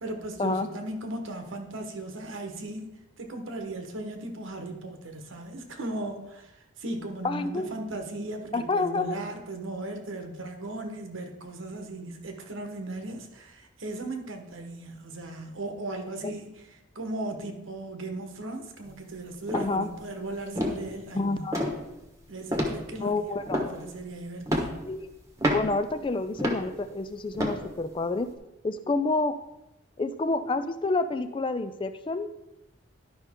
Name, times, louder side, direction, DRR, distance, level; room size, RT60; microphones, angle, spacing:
voice 1, 0.0-6.5 6.8-16.6 16.9-21.5 22.3-23.2 23.6-24.8, right 2 dB, 85° right, 5 dB, 1.2 m, -37 dB
voice 2, 7.2-7.7 8.5-9.2 16.2-16.3 19.5-19.9 21.1-21.6 23.0-23.6 24.9-25.1 25.5-28.3 28.6-29.3 30.0-32.3, left 3 dB, 25° left, 11 dB, 0.3 m, -28 dB
sound 1, 18.9-19.2 19.5-19.8 20.3-20.4 20.6-21.1 21.5-21.8 22.5-23.0 23.5-24.0 24.5-24.9 25.4-25.8 26.4-26.7 27.3-27.6 28.2-28.3, equal, 15° right, 1.1 m, -28 dB
11.5 x 5.5 x 3.6 m, 0.93 s
head